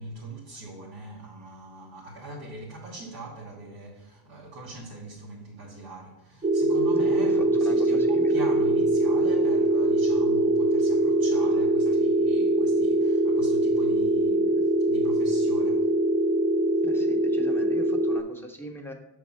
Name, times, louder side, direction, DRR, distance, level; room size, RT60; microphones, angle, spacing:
voice 1, 0.0-16.0, right 1 dB, 80° right, 1.5 m, -41 dB
sound 1, 6.4-18.2, right 1 dB, 15° right, 0.4 m, -23 dB
voice 2, 7.0-8.4 16.8-18.9, equal, 5° left, 0.9 m, -41 dB
6.9 x 3.5 x 5.5 m
cardioid pair, 90°, 40 cm